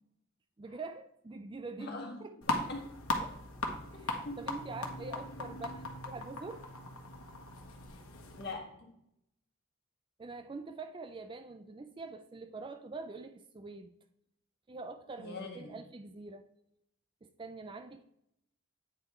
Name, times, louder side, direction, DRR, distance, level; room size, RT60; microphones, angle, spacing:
voice 1, 0.6-2.3 4.0-6.7 10.2-13.9 14.7-16.5 17.2-18.1, right 3 dB, 25° right, 9 dB, 0.3 m, -45 dB
voice 2, 1.8-2.2 2.5-2.9 3.2-3.3 4.2-4.4 8.4-8.9 15.2-15.8, left 2 dB, 50° left, 0 dB, 1.7 m, -42 dB
sound 1, 2.4-8.5, left 2 dB, 80° left, 1.2 m, -38 dB
8.9 x 4.9 x 4.2 m, 0.77 s
head